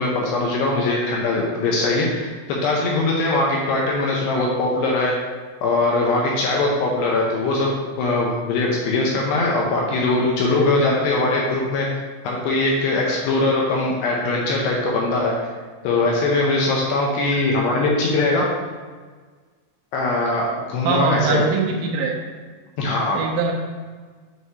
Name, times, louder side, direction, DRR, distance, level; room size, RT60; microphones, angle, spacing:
voice 1, 0.0-5.1 5.6-7.7 8.0-11.9 12.2-15.3 15.8-18.5 19.9-21.4 22.8-23.2, left 2 dB, 85° left, -2 dB, 2.4 m, -21 dB
voice 2, 20.8-22.1 23.2-23.5, right 4 dB, 80° right, -1 dB, 2.9 m, -21 dB
8.3 x 4.7 x 2.8 m, 1.5 s
omnidirectional pair, 5.8 m